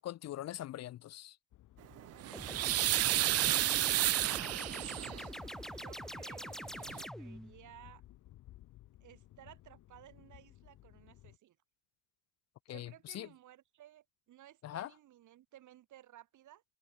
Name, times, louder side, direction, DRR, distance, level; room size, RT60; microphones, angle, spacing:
voice 1, 0.0-1.3 12.7-13.3 14.6-14.9, left 13 dB, 60° left, 0.6 m, -42 dB
sound 1, 1.5-11.4, left 15 dB, 85° left, 3.8 m, -59 dB
sound 2, 2.0-5.3 6.5-6.6 6.9-7.0, right 14 dB, 55° right, 0.4 m, -31 dB
sound 3, 2.3-7.5, equal, ahead, 1.0 m, -45 dB
voice 2, 4.2-5.4 5.7-8.0 9.0-11.6 12.7-16.6, right 13 dB, 75° right, 3.6 m, -58 dB
cardioid pair, 90°, 30 cm